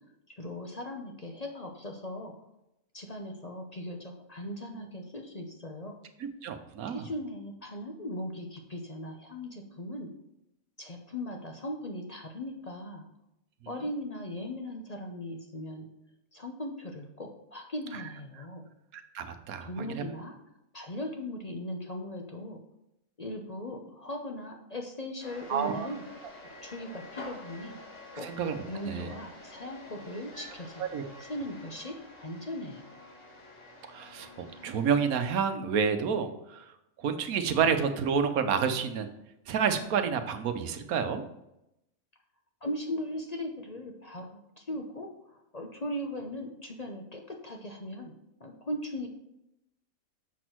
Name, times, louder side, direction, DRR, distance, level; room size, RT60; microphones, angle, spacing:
voice 1, 0.4-2.3 2.9-6.0 6.8-10.1 10.8-13.1 13.7-15.9 16.3-18.7 19.6-20.3 20.7-22.6 23.2-26.0 26.6-27.8 28.1-28.3 28.7-33.1 42.6-48.1 48.4-49.1, left 1 dB, 35° left, 2 dB, 0.7 m, -39 dB
voice 2, 6.4-7.1 18.9-20.0 25.5-25.9 28.2-29.1 30.9-31.0 33.9-34.3 34.6-36.6 37.0-39.1 39.5-41.2, right 6 dB, 85° right, 8 dB, 1.2 m, -29 dB
sound 1, 25.2-35.3, left 1 dB, 55° left, 3.0 m, -48 dB
7.1 x 6.1 x 4.6 m, 0.85 s
omnidirectional pair, 1.5 m